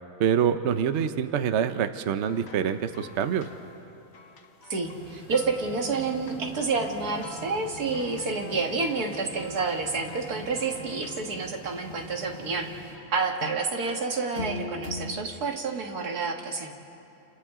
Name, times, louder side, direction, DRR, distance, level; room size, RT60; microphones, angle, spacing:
voice 1, 0.2-3.5, right 8 dB, 55° right, 9 dB, 0.9 m, -25 dB
sound 1, 2.3-5.0 5.3-6.4 6.7-12.5 12.9-15.2, left 4 dB, 50° left, 1.1 m, -44 dB
voice 2, 4.7-16.7, right 4 dB, 80° right, 2 dB, 2.2 m, -29 dB
sound 2, 4.8-12.9, equal, 15° left, 4.9 m, -44 dB
29.0 x 28.5 x 3.7 m, 2.8 s
omnidirectional pair, 1.6 m